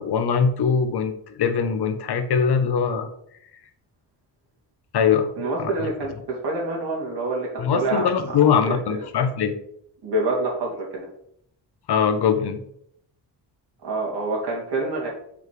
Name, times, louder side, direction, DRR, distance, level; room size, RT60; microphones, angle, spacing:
voice 1, 0.0-3.1 4.9-5.3 5.6-5.7 7.6-9.6 11.9-12.6, left 6 dB, 70° left, 9 dB, 0.9 m, -21 dB
voice 2, 5.4-8.8 10.0-11.1 13.8-15.1, right 2 dB, 70° right, -3 dB, 2.6 m, -27 dB
7.2 x 4.9 x 3.2 m, 0.71 s
cardioid pair, 100°, 42 cm